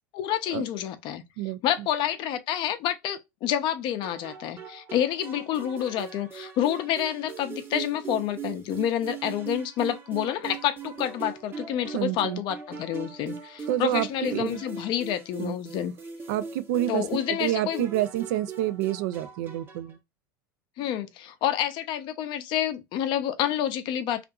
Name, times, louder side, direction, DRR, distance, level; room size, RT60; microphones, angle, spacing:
voice 1, 0.1-1.2 1.6-15.9 16.9-17.8 20.8-24.2, left 11 dB, 50° left, 0.5 m, -28 dB
sound 1, 4.0-20.0, right 6 dB, 20° right, 0.7 m, -40 dB
voice 2, 11.9-12.4 13.7-14.6 15.4-15.5 16.3-20.0, right 13 dB, 65° right, 0.4 m, -28 dB
2.6 x 2.5 x 2.3 m
hypercardioid pair, 95°, 10 cm